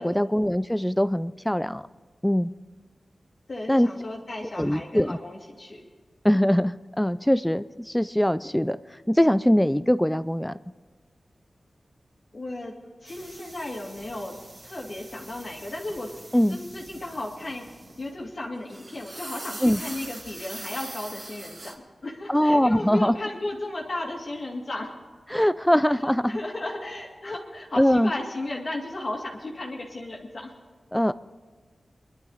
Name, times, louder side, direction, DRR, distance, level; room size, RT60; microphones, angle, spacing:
voice 1, 0.0-1.9 2.2-2.5 3.7-3.9 4.6-5.2 6.2-10.5 16.3-16.6 19.6-19.8 22.3-23.2 25.3-26.4 27.8-28.1 30.9-31.1, equal, 5° left, 14 dB, 0.3 m, -22 dB
voice 2, 3.5-5.8 12.3-12.7 13.0-14.3 14.6-16.1 16.5-21.7 22.0-24.9 25.9-30.5, left 2 dB, 50° left, -2 dB, 2.2 m, -35 dB
sound 1, 13.1-18.3 18.6-21.7, right 2 dB, 40° right, 2.2 m, -43 dB
23.0 x 11.5 x 4.0 m, 1.5 s
wide cardioid pair, 115°, 0 cm